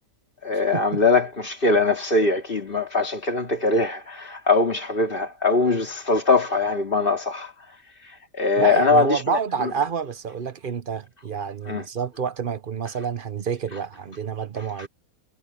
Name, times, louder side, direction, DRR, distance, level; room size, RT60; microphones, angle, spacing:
voice 1, 0.4-7.5 8.0-9.7 11.7-11.9, left 3 dB, 35° left, 2.7 m, -22 dB
voice 2, 8.6-14.9, right 7 dB, 45° right, 0.8 m, -28 dB
omnidirectional pair, 1.6 m